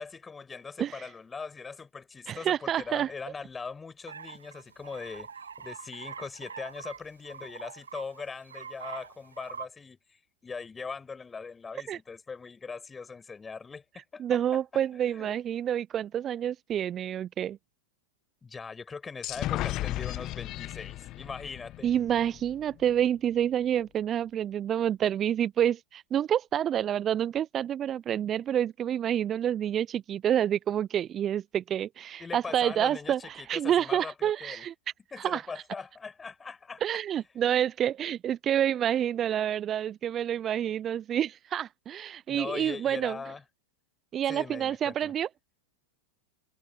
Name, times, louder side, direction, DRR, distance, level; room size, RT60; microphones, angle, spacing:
voice 1, 0.0-5.3 5.6-14.4 14.9-15.4 18.4-21.9 32.2-34.7 35.1-36.8 42.3-43.4 44.3-45.1, left 5 dB, 15° left, 6.5 m, -41 dB
voice 2, 2.3-3.1 11.9-12.0 14.2-17.6 21.8-34.7 35.2-35.4 36.8-43.2 44.1-45.3, right 10 dB, 30° right, 0.4 m, -28 dB
sound 1, 4.1-9.7, right 6 dB, 80° right, 1.8 m, -44 dB
sound 2, 19.2-22.9, left 16 dB, 40° left, 1.2 m, -35 dB
figure-of-eight pair, 95°, 0 cm